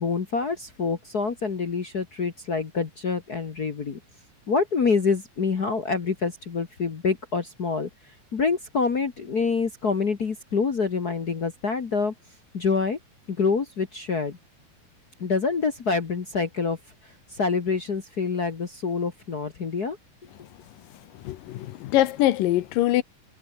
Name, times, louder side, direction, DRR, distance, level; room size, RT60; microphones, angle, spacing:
voice 1, 0.0-4.0 4.5-7.9 8.3-12.1 12.5-13.0 13.3-14.4 15.2-16.8 17.0-20.0, left 5 dB, 50° left, 1.1 m, -26 dB
voice 2, 21.2-23.0, left 14 dB, 75° left, 2.6 m, -23 dB
omnidirectional pair, 4.1 m